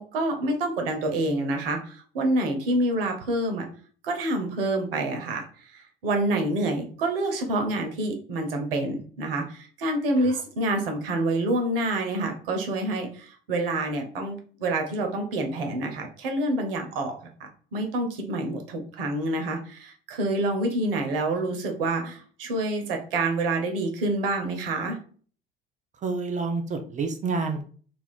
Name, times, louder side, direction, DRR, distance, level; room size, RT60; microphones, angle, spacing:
voice 1, 0.0-3.7 4.0-25.0, right 2 dB, 75° right, 4 dB, 0.7 m, -27 dB
voice 2, 26.0-27.6, right 4 dB, 25° right, 6 dB, 0.4 m, -29 dB
2.4 x 2.4 x 3.4 m, 0.43 s
figure-of-eight pair, 65°, 29 cm